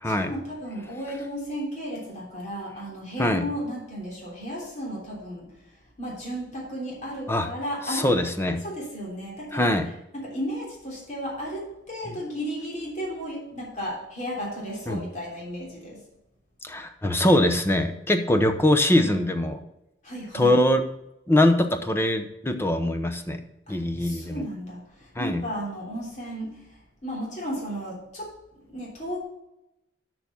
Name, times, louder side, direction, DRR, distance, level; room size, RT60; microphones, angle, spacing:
voice 1, 0.0-8.1 8.6-9.8 10.1-16.0 20.0-20.6 23.7-29.2, equal, 40° left, -3 dB, 3.2 m, -34 dB
voice 2, 7.9-8.6 9.5-9.9 14.9-15.0 16.6-19.6 20.3-20.8 21.3-23.4 23.7-24.4 25.2-25.4, left 1 dB, 15° left, 7 dB, 0.7 m, -22 dB
6.8 x 5.9 x 7.1 m, 0.88 s
head